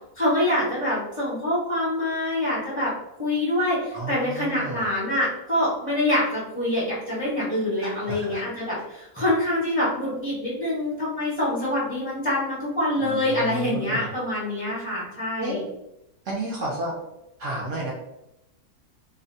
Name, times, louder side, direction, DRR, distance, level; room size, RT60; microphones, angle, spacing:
voice 1, 0.2-2.9 3.2-15.6, left 1 dB, 10° right, -8 dB, 0.4 m, -25 dB
voice 2, 3.9-4.9 8.1-8.4 13.0-14.1 15.4-15.6 16.3-17.0 17.4-17.9, right 1 dB, 65° right, -3 dB, 0.8 m, -31 dB
2.7 x 2.1 x 2.6 m, 0.87 s
omnidirectional pair, 1.7 m